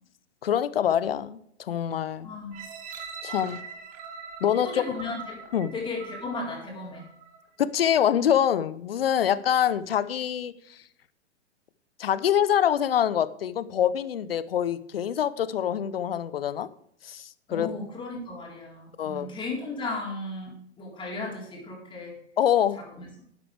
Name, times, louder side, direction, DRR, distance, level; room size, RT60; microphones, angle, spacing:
voice 1, 0.4-2.3 3.2-3.6 4.4-4.8 5.5-5.7 7.6-10.8 12.0-16.7 17.0-17.7 19.0-19.3 22.4-22.8, left 9 dB, 55° left, 16 dB, 0.9 m, -25 dB
voice 2, 2.2-2.6 4.5-5.4 5.7-7.1 17.5-22.2 22.9-23.1, left 3 dB, 15° left, -3 dB, 4.2 m, -35 dB
sound 1, 2.5-7.5 8.0-8.1, right 5 dB, 25° right, 1.8 m, -42 dB
13.0 x 11.0 x 3.4 m, 0.69 s
figure-of-eight pair, 110°, 34 cm